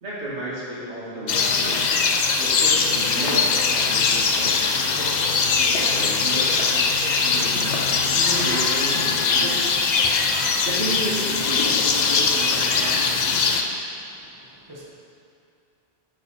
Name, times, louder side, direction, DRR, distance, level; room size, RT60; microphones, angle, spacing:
voice 1, 0.0-9.9 10.6-13.8, right 1 dB, 75° right, -9 dB, 2.3 m, -33 dB
sound 1, 1.3-13.6, left 5 dB, 55° left, 0.5 m, -21 dB
sound 2, 2.8-9.0, left 2 dB, 85° left, 1.2 m, -38 dB
voice 2, 13.9-14.8, equal, 20° right, -5 dB, 1.0 m, -48 dB
8.5 x 5.2 x 4.2 m, 2.5 s
omnidirectional pair, 1.1 m